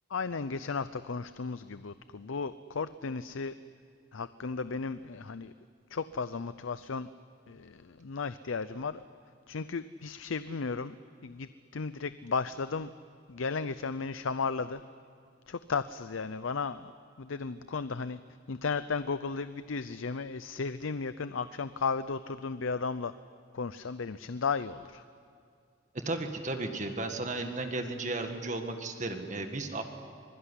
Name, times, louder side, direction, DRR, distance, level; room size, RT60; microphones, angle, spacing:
voice 1, 0.1-3.5 4.1-5.5 5.9-7.1 7.5-9.0 9.5-10.9 11.2-12.9 13.3-14.8 15.5-16.9 17.2-18.2 18.5-23.1 23.5-25.0, left 4 dB, 85° left, 13 dB, 0.6 m, -34 dB
voice 2, 25.9-29.8, right 2 dB, 40° right, 5 dB, 1.9 m, -34 dB
25.0 x 22.0 x 9.9 m, 2.3 s
head